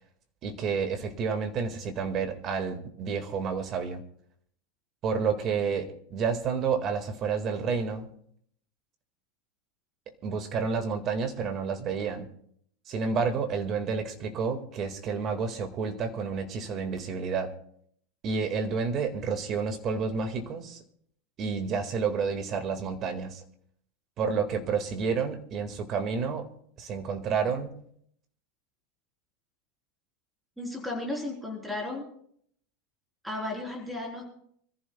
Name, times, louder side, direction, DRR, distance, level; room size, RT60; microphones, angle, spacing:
voice 1, 0.4-4.0 5.0-8.1 10.2-12.3 12.9-17.5 18.2-20.8 21.4-23.4 24.2-26.5 26.8-27.8, right 5 dB, 30° right, 6 dB, 1.9 m, -30 dB
voice 2, 30.6-32.1 33.2-34.3, left 2 dB, ahead, -1 dB, 3.8 m, -34 dB
25.5 x 14.5 x 2.3 m, 0.65 s
supercardioid pair, 155°, 0 cm